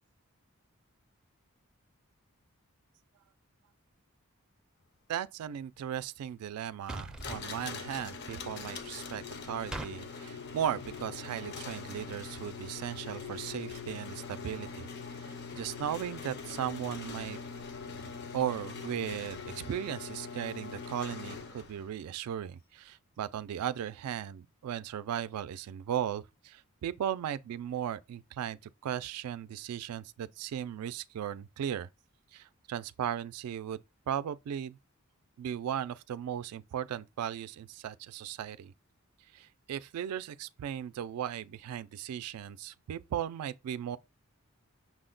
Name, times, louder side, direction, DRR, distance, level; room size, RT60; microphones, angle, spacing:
voice 1, 5.1-14.9 15.2-17.4 18.3-28.6 28.8-31.9 32.3-33.8 34.1-34.8 35.4-38.7 39.3-44.0, right 9 dB, 90° right, 0.3 m, -37 dB
sound 1, 6.9-7.4 9.7-9.9, right 1 dB, 5° right, 0.4 m, -39 dB
sound 2, 7.2-21.9, left 5 dB, 50° left, 0.5 m, -42 dB
6.1 x 2.1 x 3.7 m
head